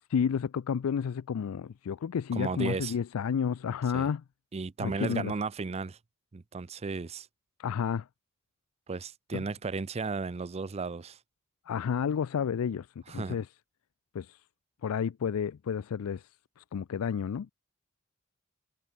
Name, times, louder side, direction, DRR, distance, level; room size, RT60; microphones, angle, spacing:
voice 1, 0.1-4.2 4.8-5.3 7.6-8.0 9.3-9.4 11.7-12.9 13.1-13.5 14.1-14.4 14.8-16.3 16.6-17.5, left 7 dB, 80° left, 0.4 m, -31 dB
voice 2, 2.3-2.9 3.9-4.1 4.5-6.0 6.3-7.3 8.9-11.2 13.1-13.4, right 4 dB, 30° right, 0.5 m, -34 dB
head